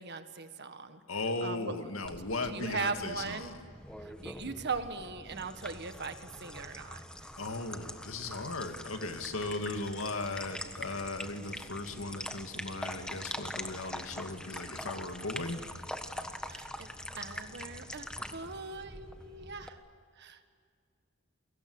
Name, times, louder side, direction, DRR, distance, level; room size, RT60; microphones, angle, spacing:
voice 1, 0.0-1.0 1.4-1.8 2.4-3.5 4.0-7.0 16.5-16.9 17.2-19.8 20.2-20.5, right 4 dB, 55° right, 9 dB, 1.7 m, -39 dB
voice 2, 1.1-3.5 7.4-15.7, left 2 dB, 75° left, 6 dB, 2.2 m, -37 dB
sound 1, 2.0-19.7, left 1 dB, 5° left, 1.4 m, -44 dB
29.5 x 23.0 x 8.1 m, 2.1 s
head